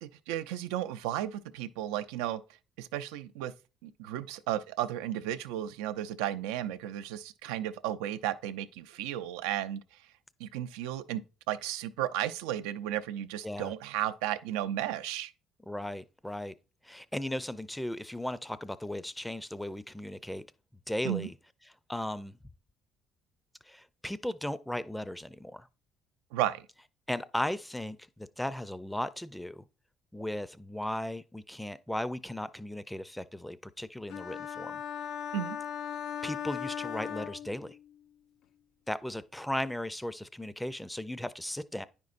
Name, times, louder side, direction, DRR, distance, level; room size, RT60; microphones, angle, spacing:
voice 1, 0.0-2.4 2.8-3.5 3.8-10.0 10.4-15.3 21.0-21.3 26.3-26.7 35.3-35.6, right 12 dB, 90° right, 0.4 m, -34 dB
voice 2, 15.7-16.5 16.9-20.5 20.9-21.3 21.9-22.3 23.7-25.7 27.1-29.6 30.1-34.8 36.2-37.8 38.9-41.9, left 1 dB, 5° left, 0.4 m, -36 dB
sound 1, 34.1-38.0, left 8 dB, 65° left, 0.4 m, -38 dB
9.4 x 5.2 x 2.5 m
supercardioid pair, 80°, 0 cm